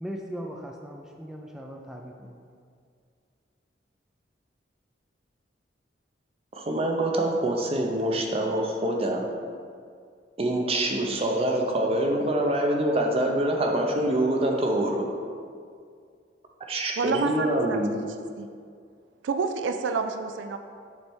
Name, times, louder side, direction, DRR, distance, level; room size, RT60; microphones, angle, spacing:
voice 1, 0.0-2.4, equal, 5° right, 1 dB, 0.4 m, -38 dB
voice 2, 6.5-9.2 10.4-15.0 16.7-17.9, right 1 dB, 35° right, 1 dB, 0.7 m, -25 dB
voice 3, 17.0-18.1 18.4-18.5 19.2-20.6, right 4 dB, 75° right, 7 dB, 0.4 m, -29 dB
8.4 x 3.3 x 4.5 m, 2.2 s
head